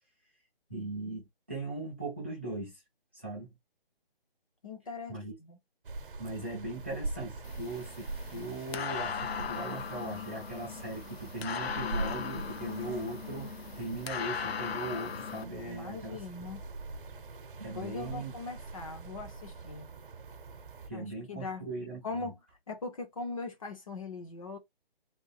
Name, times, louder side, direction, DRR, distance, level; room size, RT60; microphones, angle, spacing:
voice 1, 0.7-2.8 3.1-3.6 5.1-5.4 6.2-16.2 17.6-18.3 20.9-22.3, right 2 dB, 10° right, 0.5 m, -39 dB
voice 2, 4.6-5.6 15.6-16.6 17.7-19.9 20.9-21.6 22.0-22.4 22.7-24.6, left 3 dB, 35° left, 0.8 m, -40 dB
sound 1, 5.8-20.9, right 3 dB, 65° right, 0.8 m, -43 dB
sound 2, 7.4-15.4, left 7 dB, 85° left, 0.6 m, -38 dB
sound 3, 12.0-19.6, left 3 dB, 55° left, 1.5 m, -61 dB
3.6 x 2.2 x 4.2 m
hypercardioid pair, 170°, 30 cm